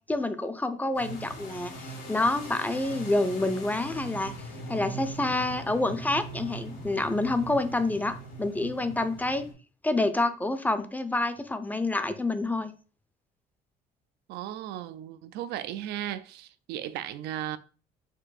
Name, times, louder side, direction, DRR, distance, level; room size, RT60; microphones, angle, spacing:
voice 1, 0.1-4.3 4.7-9.4 9.8-12.7, left 2 dB, 10° left, 0.5 m, -28 dB
sound 1, 0.9-9.5, right 2 dB, 75° left, 2.0 m, -40 dB
voice 2, 14.3-17.6, right 12 dB, 85° right, 0.4 m, -36 dB
4.5 x 2.5 x 4.0 m
cardioid pair, 110°, 17 cm